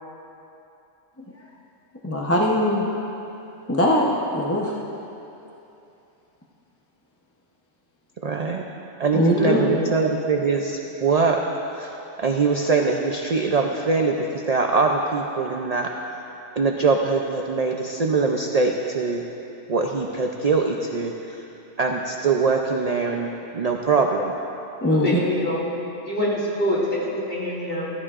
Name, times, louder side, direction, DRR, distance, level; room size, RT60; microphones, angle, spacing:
voice 1, 2.0-2.9 3.7-4.1 4.3-4.7 9.1-9.6 24.8-25.1, left 1 dB, 15° left, -2 dB, 0.7 m, -20 dB
voice 2, 8.2-8.6 9.0-11.4 11.8-11.9 12.2-14.2 14.5-15.9 16.6-19.2 19.7-21.1 21.8-24.3, right 4 dB, 45° right, 2 dB, 0.5 m, -22 dB
voice 3, 9.2-9.9 24.8-25.6 26.1-27.9, equal, 50° left, -7 dB, 3.2 m, -26 dB
15.0 x 14.5 x 2.5 m, 2.9 s
omnidirectional pair, 1.3 m